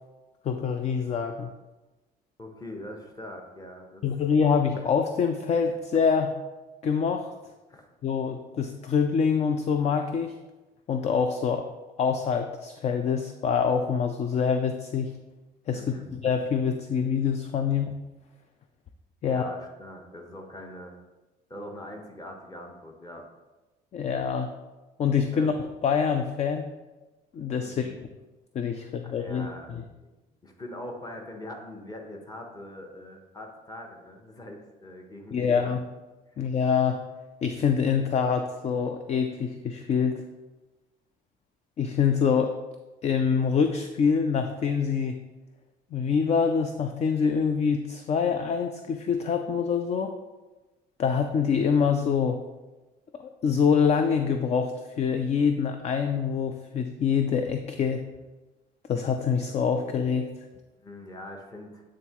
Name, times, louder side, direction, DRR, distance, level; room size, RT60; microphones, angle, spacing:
voice 1, 0.4-1.5 4.0-6.3 6.8-7.3 8.0-10.3 10.9-11.6 12.0-15.1 15.7-17.9 19.2-19.4 23.9-24.5 25.0-26.6 27.3-27.9 28.5-29.5 35.3-35.8 36.4-37.0 37.4-40.2 41.8-42.5 43.0-45.2 45.9-50.1 51.0-52.4 53.2-58.0 58.9-60.3, left 6 dB, 40° left, 7 dB, 0.4 m, -25 dB
voice 2, 2.4-4.0 7.7-7.9 15.7-16.1 19.2-21.0 21.5-23.2 25.3-25.5 27.6-28.0 28.8-30.1 30.4-35.7 60.8-61.8, left 1 dB, 20° left, 2 dB, 1.0 m, -42 dB
8.8 x 3.6 x 3.0 m, 1.1 s
cardioid pair, 110°, 17 cm